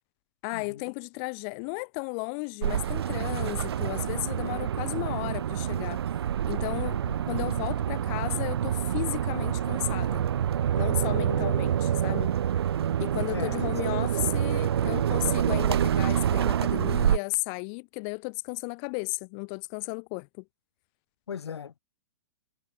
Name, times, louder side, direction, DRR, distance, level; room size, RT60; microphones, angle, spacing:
voice 1, 0.4-6.0 6.4-7.0 7.3-10.2 10.8-12.3 13.0-20.4, left 40 dB or more, 35° left, 1.0 m, -34 dB
sound 1, 2.6-17.2, right 9 dB, 75° right, 1.1 m, -27 dB
voice 2, 21.3-21.8, left 7 dB, 85° left, 2.6 m, -39 dB
hypercardioid pair, 145°, 13 cm